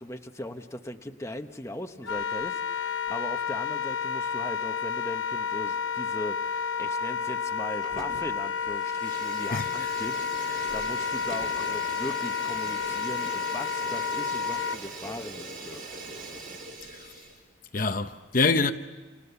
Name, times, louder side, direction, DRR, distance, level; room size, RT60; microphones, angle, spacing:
voice 1, 0.0-15.8, left 1 dB, 15° left, 1.2 m, -39 dB
Wind instrument woodwind instrument, 2.0-14.8, left 6 dB, 70° left, 1.1 m, -31 dB
Fire, 7.8-8.3 8.6-17.4, right 2 dB, 45° right, 6.5 m, -41 dB
voice 2, 9.5-10.0 16.8-17.2 17.7-18.7, left 3 dB, 45° left, 0.9 m, -27 dB
29.5 x 28.5 x 7.1 m
head